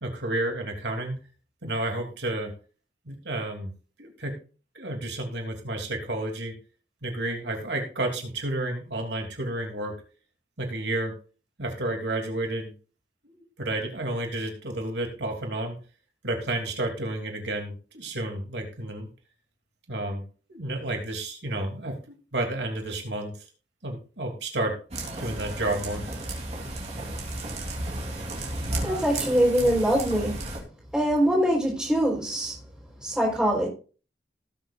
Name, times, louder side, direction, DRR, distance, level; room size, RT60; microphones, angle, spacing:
voice 1, 0.0-1.2 1.6-2.5 3.1-3.7 4.0-4.3 4.7-6.5 7.0-9.9 10.6-11.1 11.6-12.7 13.2-15.8 16.2-19.1 19.9-20.2 20.5-22.0 22.3-23.3 23.8-24.8 25.2-26.0, right 1 dB, 85° right, 2.9 m, -31 dB
sound 1, 24.9-30.6, right 2 dB, 40° right, 3.4 m, -33 dB
voice 2, 28.8-30.4 30.9-32.5 33.0-33.7, equal, 5° right, 4.1 m, -23 dB
18.5 x 7.4 x 2.5 m
head